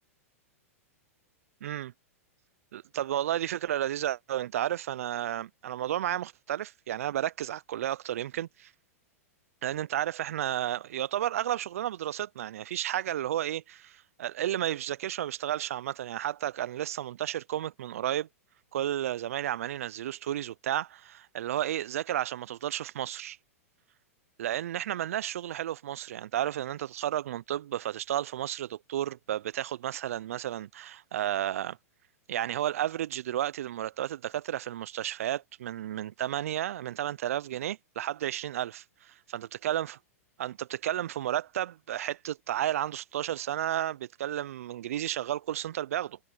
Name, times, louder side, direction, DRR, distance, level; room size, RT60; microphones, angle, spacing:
voice 1, 1.6-1.9 2.7-8.7 9.6-18.3 18.7-23.4 24.4-31.8 32.3-40.0 40.4-46.2, right 12 dB, 70° right, 0.6 m, -32 dB
hypercardioid pair, 110°, 8 cm